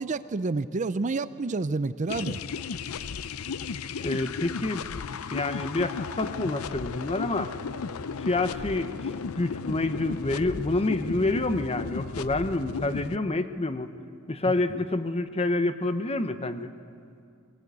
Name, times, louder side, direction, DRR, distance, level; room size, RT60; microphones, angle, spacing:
voice 1, 0.0-2.4, right 3 dB, 35° right, 14 dB, 0.5 m, -29 dB
sound 1, 2.1-13.2, left 5 dB, 85° left, 0.6 m, -35 dB
voice 2, 4.0-4.9 5.3-7.5 8.2-13.9 14.3-16.7, left 2 dB, 30° left, 10 dB, 0.8 m, -28 dB
21.0 x 18.5 x 8.3 m, 2.4 s
head